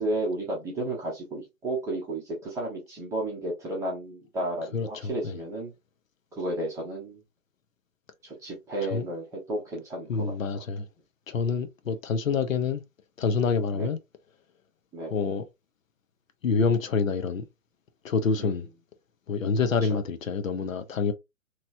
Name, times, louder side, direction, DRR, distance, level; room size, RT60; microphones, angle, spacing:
voice 1, 0.0-5.7 6.4-7.2 8.2-10.6 13.7-13.9 14.9-15.2 18.4-18.6, right 1 dB, 5° right, 0.7 m, -33 dB
voice 2, 4.7-5.4 8.9-9.0 10.1-10.9 11.3-12.8 13.2-14.0 15.1-15.4 16.4-17.4 18.0-18.6 19.3-21.1, left 5 dB, 65° left, 0.7 m, -27 dB
3.0 x 3.0 x 2.5 m
figure-of-eight pair, 130°, 42 cm